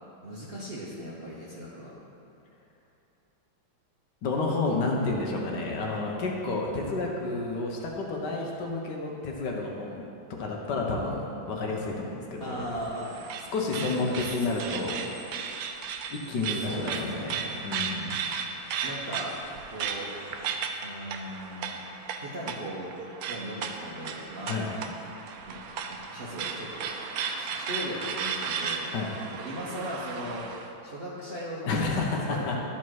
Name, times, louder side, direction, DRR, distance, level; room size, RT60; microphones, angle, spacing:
voice 1, 0.2-1.9 12.4-13.1 13.9-14.5 16.5-17.3 18.8-19.4 19.7-20.1 20.8-21.8 22.2-23.0 23.3-24.9 25.5-26.9 27.3-28.8 29.3-30.5 30.8-32.5, equal, 45° right, -7 dB, 0.8 m, -38 dB
voice 2, 4.2-10.0 10.4-12.6 13.5-15.0 16.1-18.2 24.4-24.7 28.9-29.1 31.7-32.7, left 3 dB, 65° left, -1 dB, 1.4 m, -30 dB
sound 1, 12.5-30.7, right 6 dB, 80° right, 0.8 m, -35 dB
12.0 x 4.3 x 4.7 m, 2.8 s
omnidirectional pair, 2.2 m